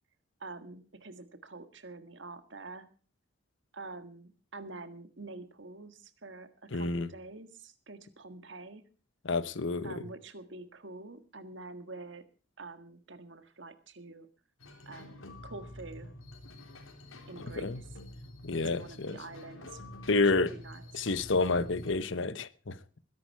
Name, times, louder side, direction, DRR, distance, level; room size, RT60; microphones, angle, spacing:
voice 1, 0.4-2.9 3.7-8.8 9.8-12.2 12.6-14.3 14.8-16.1 17.3-17.9 18.6-19.8 20.2-21.0, right 3 dB, 60° right, 1.7 m, -46 dB
voice 2, 6.7-7.1 9.2-10.0 17.6-17.8 18.4-19.2 20.1-20.5 20.9-22.8, left 3 dB, 65° left, 1.0 m, -29 dB
sound 1, 14.6-21.9, left 1 dB, 80° left, 3.7 m, -48 dB
21.0 x 11.0 x 4.6 m
head